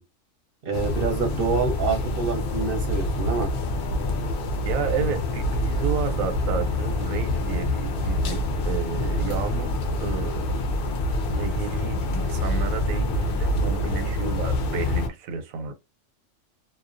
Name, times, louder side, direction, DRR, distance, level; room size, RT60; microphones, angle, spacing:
voice 1, 0.6-3.5, right 4 dB, 55° right, 0.6 m, -26 dB
sound 1, 0.7-15.1, left 1 dB, 65° left, 0.5 m, -26 dB
voice 2, 4.6-10.7 11.2-15.7, right 5 dB, 90° right, 1.1 m, -31 dB
2.3 x 2.1 x 2.4 m
omnidirectional pair, 1.4 m